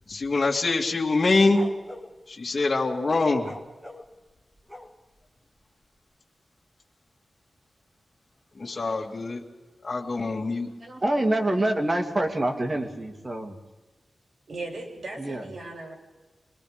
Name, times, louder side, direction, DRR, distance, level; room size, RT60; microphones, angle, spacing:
voice 1, 0.1-1.6 2.3-3.5 8.6-9.4 9.8-10.7, left 3 dB, 40° left, -2 dB, 2.4 m, -24 dB
sound 1, 1.5-2.1 3.4-5.2, left 1 dB, ahead, 1.8 m, -43 dB
voice 2, 10.8-13.6 15.2-15.4, right 1 dB, 30° right, 4 dB, 2.4 m, -26 dB
voice 3, 14.5-15.9, right 2 dB, 60° right, 0 dB, 5.5 m, -37 dB
26.5 x 20.5 x 5.1 m, 1.2 s
wide cardioid pair, 100°, 0 cm